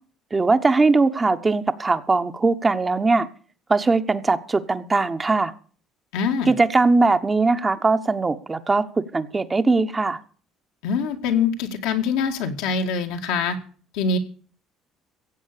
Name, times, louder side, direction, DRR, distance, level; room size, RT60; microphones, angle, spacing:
voice 1, 0.3-3.3 3.7-5.5 6.5-8.8 9.1-10.2, right 3 dB, 25° right, 1.2 m, -20 dB
voice 2, 6.1-6.5 10.8-13.6 13.9-14.2, left 5 dB, 80° left, 2.0 m, -24 dB
15.5 x 7.9 x 6.8 m
supercardioid pair, 75°, 0 cm